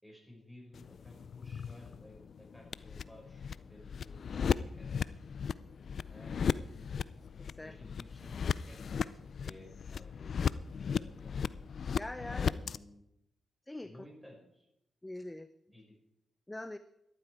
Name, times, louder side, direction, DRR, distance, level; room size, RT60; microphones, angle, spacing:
voice 1, 0.0-4.9 6.1-6.9 7.6-10.5 10.8-11.4 12.4-13.1 13.8-14.7 15.7-16.0, left 1 dB, ahead, 0 dB, 5.6 m, -56 dB
sound 1, 0.7-12.8, left 6 dB, 60° left, 0.4 m, -36 dB
voice 2, 11.9-12.6 13.7-14.1 15.0-15.5 16.5-16.8, left 1 dB, 15° left, 11 dB, 0.6 m, -42 dB
13.0 x 11.5 x 4.7 m, 0.84 s
cardioid pair, 70°, 0 cm